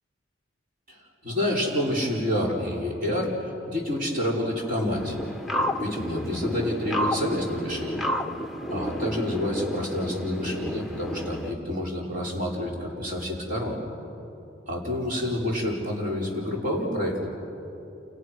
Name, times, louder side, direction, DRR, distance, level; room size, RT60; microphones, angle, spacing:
voice 1, 0.9-5.2 5.8-8.0 8.7-13.8 14.7-17.3, left 1 dB, 45° right, -2 dB, 5.3 m, -28 dB
sound 1, 4.9-11.5, equal, ahead, 1.1 m, -31 dB
29.5 x 28.5 x 6.3 m, 2.9 s
head